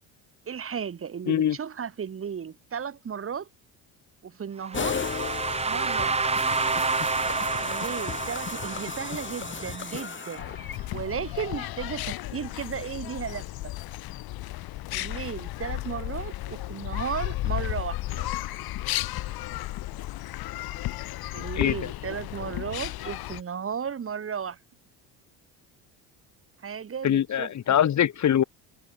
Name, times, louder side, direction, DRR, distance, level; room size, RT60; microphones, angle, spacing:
voice 1, 0.5-3.5 4.2-5.1 5.7-6.2 7.6-10.4 10.9-13.7 14.9-18.3 21.3-24.6 26.6-27.5, right 7 dB, 35° right, 6.6 m, -35 dB
sound 1, 4.6-10.6, right 4 dB, 15° right, 1.5 m, -29 dB
sound 2, 4.7-10.8, left 7 dB, 30° left, 3.1 m, -35 dB
sound 3, 10.4-23.4, left 17 dB, 70° left, 5.3 m, -34 dB
voice 2, 21.5-21.9 27.0-28.4, left 10 dB, 45° left, 6.8 m, -23 dB
cardioid pair, 120°, 38 cm